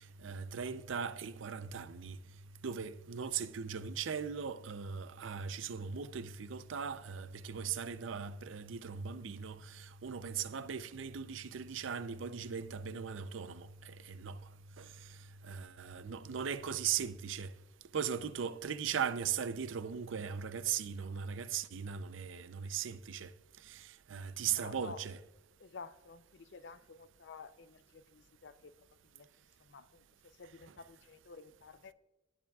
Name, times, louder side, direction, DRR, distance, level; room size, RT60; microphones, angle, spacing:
voice 1, 0.2-2.2 2.6-14.4 14.8-14.9 15.4-17.5 17.9-23.3 23.7-23.8 24.1-25.2, right 7 dB, 85° right, 0.5 m, -38 dB
voice 2, 24.5-25.1 25.6-28.7 29.1-29.3 29.6-31.9, left 4 dB, 65° left, 0.5 m, -52 dB
18.0 x 7.2 x 2.3 m
head